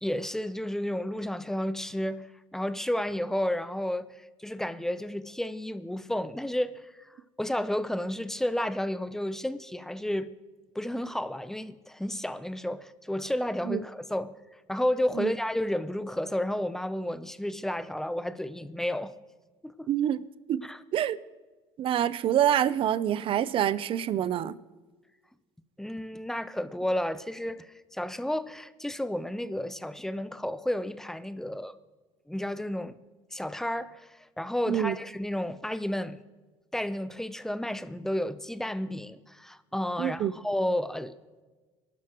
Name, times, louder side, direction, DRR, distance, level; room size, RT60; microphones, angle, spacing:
voice 1, 0.0-7.1 7.4-10.3 10.7-14.4 14.7-19.1 19.6-19.9 20.6-20.8 25.8-31.7 32.3-33.0 33.3-36.2 36.7-41.1, left 1 dB, 5° left, 0.7 m, -32 dB
voice 2, 19.9-20.2 20.5-20.6 20.9-21.2 21.8-24.6 34.7-35.0 40.0-40.3, right 10 dB, 55° right, 0.6 m, -26 dB
24.0 x 12.0 x 3.1 m
supercardioid pair, 90°, 11 cm